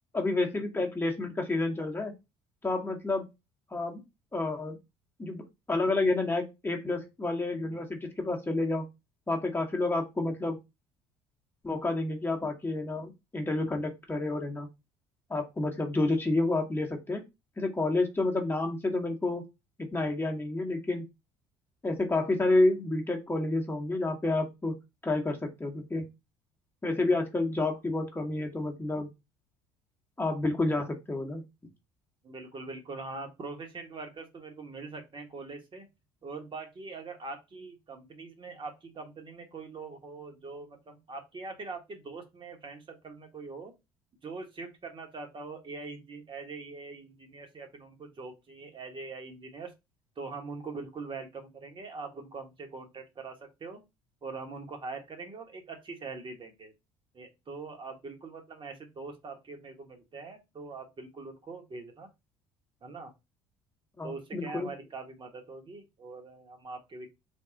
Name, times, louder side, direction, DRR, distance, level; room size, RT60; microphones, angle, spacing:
voice 1, 0.1-2.1 2.6-3.3 3.7-4.0 4.3-4.8 5.2-8.9 9.3-10.6 11.6-14.7 15.3-17.2 17.6-19.4 19.8-21.1 21.8-24.8 25.0-26.0 26.8-29.1 30.2-31.4 64.0-64.7, left 2 dB, 15° left, 1 dB, 1.0 m, -29 dB
voice 2, 32.2-35.9 36.2-43.7 44.2-49.7 50.2-53.8 54.2-56.7 57.1-62.1 62.8-63.1 64.0-67.1, right 3 dB, 35° right, 4 dB, 1.1 m, -42 dB
3.6 x 2.3 x 3.7 m, 0.23 s
hypercardioid pair, 70°, 14 cm